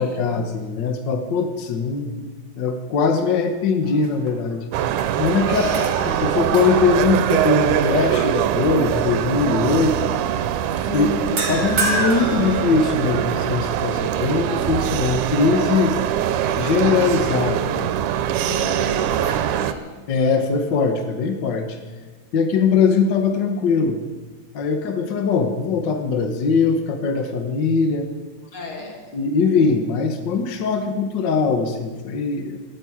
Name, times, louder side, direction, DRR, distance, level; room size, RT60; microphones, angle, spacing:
voice 1, 0.0-4.6 5.2-5.6 6.2-10.1 10.9-16.0 16.6-18.0 20.1-21.8 22.3-24.0 24.5-28.1 29.1-32.6, left 5 dB, 70° left, 6 dB, 1.0 m, -21 dB
sound 1, 3.8-4.5 4.9-8.2 8.6-8.9 11.4-13.3, right 3 dB, 45° right, 2.6 m, -29 dB
sound 2, 4.7-19.7, right 10 dB, 80° right, 2.2 m, -23 dB
voice 2, 5.4-6.0 10.8-11.5 18.5-20.0 28.5-29.1, left 3 dB, 45° left, 1 dB, 3.2 m, -32 dB
14.0 x 10.5 x 8.5 m, 1.3 s
omnidirectional pair, 3.6 m